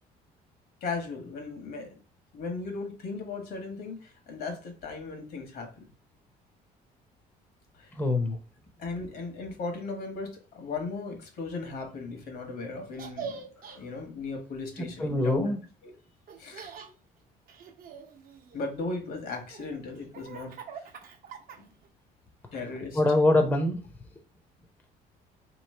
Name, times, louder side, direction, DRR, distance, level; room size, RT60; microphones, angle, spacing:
voice 1, 0.8-1.9 2.3-5.9 7.8-7.9 8.8-15.6 15.8-15.9 16.4-16.7 18.5-20.5 20.8-20.9 21.6-21.7 22.5-23.0, left 3 dB, 65° left, 1.3 m, -37 dB
voice 2, 7.9-8.4 14.8-15.6 22.9-23.8, left 2 dB, 10° left, 0.6 m, -24 dB
Laughter, 12.9-13.8 16.3-16.9 17.5-18.7 19.3-21.9, right 6 dB, 55° right, 0.8 m, -43 dB
3.1 x 2.9 x 4.3 m
cardioid pair, 110°, 17 cm